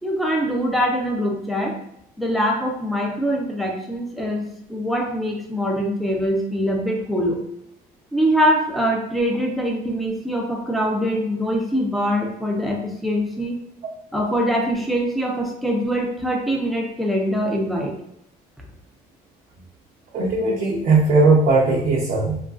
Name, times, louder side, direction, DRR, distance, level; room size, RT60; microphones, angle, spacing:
voice 1, 0.0-1.8 2.2-4.4 4.7-7.4 8.1-13.6 14.1-17.9, equal, ahead, 0 dB, 0.5 m, -23 dB
voice 2, 20.1-22.4, right 3 dB, 55° right, -5 dB, 0.6 m, -18 dB
2.9 x 2.4 x 2.4 m, 0.77 s
cardioid pair, 110°, 17 cm